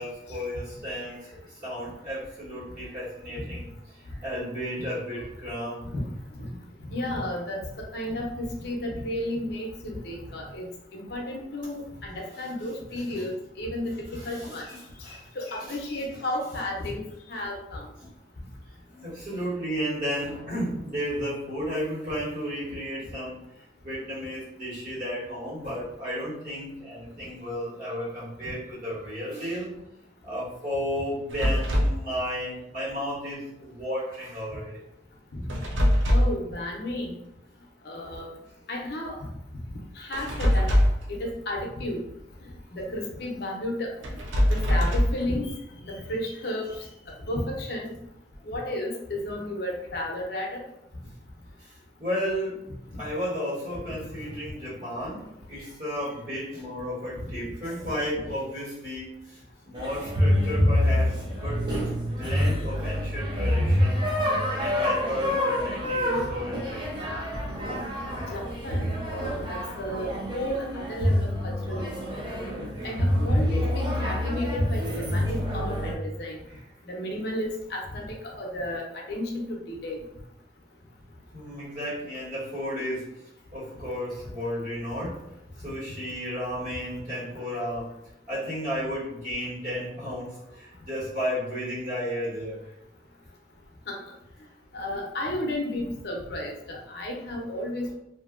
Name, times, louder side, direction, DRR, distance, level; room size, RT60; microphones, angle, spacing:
voice 1, 0.0-5.9 12.3-12.4 13.0-13.3 14.1-15.3 15.7-15.8 18.0-18.1 18.9-29.7 30.2-34.8 51.6-52.6 53.0-64.0 64.6-67.1 72.6-72.7 76.5-76.6 81.3-83.2 83.5-85.3 85.6-87.9 88.3-92.7, equal, 45° right, -9 dB, 1.4 m, -33 dB
voice 2, 6.8-7.6 7.9-10.7 10.9-13.3 13.6-14.7 15.1-17.0 17.3-17.8 35.3-35.5 36.1-37.1 37.8-38.3 38.7-39.1 40.0-40.7 41.1-42.0 42.7-43.9 44.5-45.5 45.8-46.7 47.3-47.9 48.4-50.6 60.9-61.0 68.3-72.0 72.8-74.8 75.1-76.4 76.9-80.0 93.9-94.0 94.7-97.9, left 1 dB, 60° left, -1 dB, 0.6 m, -33 dB
sound 1, 31.3-32.0 35.5-36.5 40.1-41.1 44.0-45.3, equal, 85° right, 0.5 m, -22 dB
sound 2, 59.7-75.9, left 1 dB, 25° right, 0.6 m, -26 dB
2.7 x 2.5 x 2.4 m, 0.84 s
head